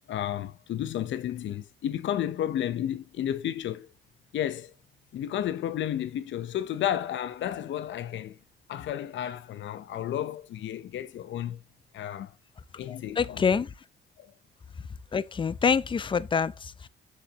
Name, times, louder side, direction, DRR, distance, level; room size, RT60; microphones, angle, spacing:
voice 1, 0.1-3.9 4.3-4.7 5.1-8.4 8.7-11.6 11.9-12.4 12.8-13.6 14.2-14.3, left 11 dB, 70° left, 0.8 m, -32 dB
voice 2, 12.9-13.7 15.1-16.9, left 6 dB, 25° left, 0.5 m, -26 dB
6.6 x 6.5 x 2.9 m
cardioid pair, 90°, 20 cm